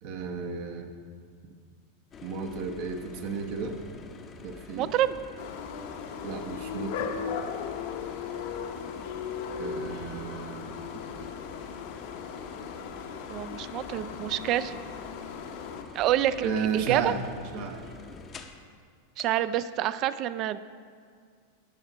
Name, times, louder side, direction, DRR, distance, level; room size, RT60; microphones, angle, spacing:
voice 1, 0.0-0.9 2.2-3.8 4.4-4.9 6.2-7.2 9.6-10.9 16.4-17.2 17.5-17.9, right 5 dB, 55° right, 4 dB, 0.9 m, -33 dB
sound 1, 2.1-18.7 19.2-19.3, left 4 dB, 25° left, 0.6 m, -46 dB
voice 2, 4.8-5.2 13.3-14.8 15.9-17.1 19.2-20.6, right 12 dB, 40° right, 14 dB, 0.3 m, -27 dB
sound 2, 5.4-15.8, left 7 dB, 65° left, 0.8 m, -37 dB
10.5 x 4.9 x 5.5 m, 2.1 s
supercardioid pair, 130°, 0 cm